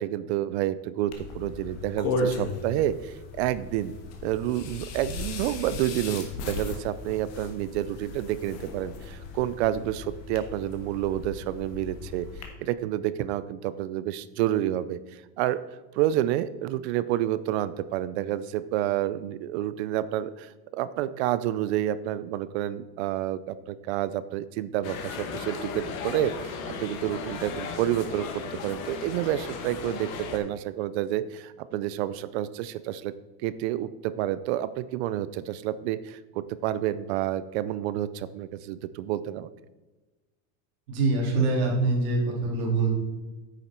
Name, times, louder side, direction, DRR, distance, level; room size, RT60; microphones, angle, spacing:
voice 1, 0.0-4.0 4.2-12.3 12.6-15.0 15.4-15.6 15.9-33.1 33.4-39.5, right 13 dB, 55° right, 16 dB, 0.5 m, -29 dB
sound 1, 1.1-12.5, left 2 dB, 40° left, 1.4 m, -36 dB
sound 2, 24.8-30.4, left 5 dB, 80° left, 1.7 m, -36 dB
voice 2, 40.9-42.9, right 3 dB, 85° right, -2 dB, 3.4 m, -24 dB
9.1 x 7.0 x 4.4 m, 1.2 s
supercardioid pair, 165°, 41 cm